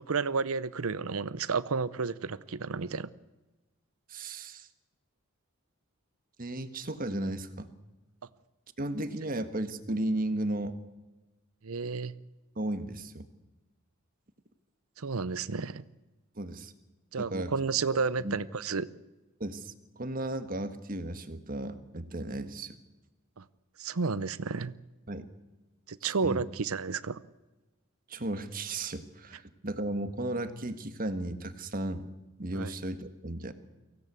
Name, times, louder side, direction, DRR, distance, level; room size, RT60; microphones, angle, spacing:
voice 1, 0.0-3.1 11.6-12.1 15.0-15.8 17.1-18.9 23.4-23.5 23.8-24.7 25.9-27.2 32.5-32.7, right 5 dB, 80° right, 17 dB, 0.7 m, -31 dB
voice 2, 4.1-4.7 6.4-7.7 8.8-10.7 12.6-13.3 16.4-16.7 17.2-17.5 17.9-18.4 19.4-22.7 25.1-25.3 26.0-26.4 28.1-32.1 32.4-33.5, right 1 dB, 40° right, 10 dB, 1.6 m, -35 dB
24.0 x 17.0 x 8.4 m, 1.1 s
head